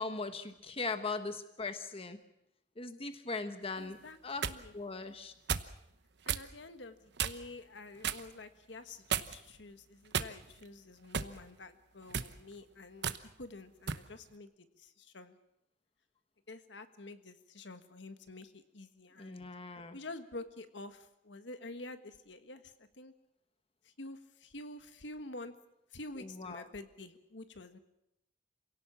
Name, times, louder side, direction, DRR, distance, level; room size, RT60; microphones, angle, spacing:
voice 1, 0.0-2.2 2.8-4.5 4.7-5.3 19.2-20.0 26.2-26.6, left 3 dB, 30° left, 8 dB, 1.3 m, -39 dB
voice 2, 3.8-4.7 6.2-14.5 14.8-15.4 16.5-19.5 19.9-23.1 23.8-25.5 25.9-27.8, left 2 dB, 70° left, 9 dB, 1.6 m, -48 dB
sound 1, 4.0-4.6 5.5-5.7 6.3-6.5 7.2-7.5 8.0-8.3 9.1-9.5 10.1-10.6 11.1-11.4 12.0-12.3 13.0-13.2 13.9-14.1, right 7 dB, 65° right, 1.0 m, -34 dB
27.5 x 17.5 x 7.3 m, 0.85 s
head